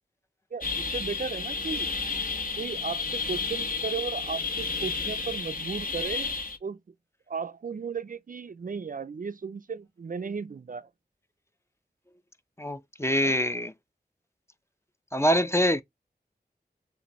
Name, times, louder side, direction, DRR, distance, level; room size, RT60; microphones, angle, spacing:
voice 1, 0.5-1.9 2.6-6.3 6.6-6.8 7.3-10.9 13.2-13.4, right 5 dB, 55° right, 0.4 m, -35 dB
sound 1, 0.6-6.6, left 5 dB, 55° left, 1.2 m, -31 dB
voice 2, 12.6-13.7 15.1-15.8, equal, 15° left, 0.6 m, -24 dB
6.6 x 2.6 x 3.0 m
wide cardioid pair, 55°, 17 cm